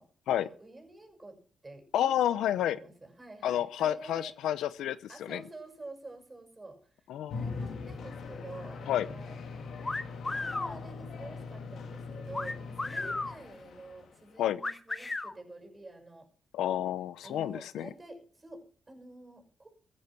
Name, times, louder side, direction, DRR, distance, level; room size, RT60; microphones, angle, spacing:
voice 1, 0.0-1.8 2.1-4.3 5.1-7.0 7.3-9.4 10.3-16.3 17.2-19.7, right 2 dB, 20° right, 5 dB, 6.1 m, -48 dB
voice 2, 1.9-2.8 3.4-5.4 7.1-7.4 8.9-9.1 14.4-14.6 16.5-17.9, left 11 dB, 85° left, 16 dB, 0.7 m, -30 dB
sound 1, 7.3-14.3, left 4 dB, 70° left, 2.6 m, -41 dB
sound 2, 9.8-10.8 12.3-13.4 14.6-15.3, left 2 dB, 25° left, 1.2 m, -34 dB
15.0 x 9.9 x 6.0 m, 0.42 s
cardioid pair, 70°, 0 cm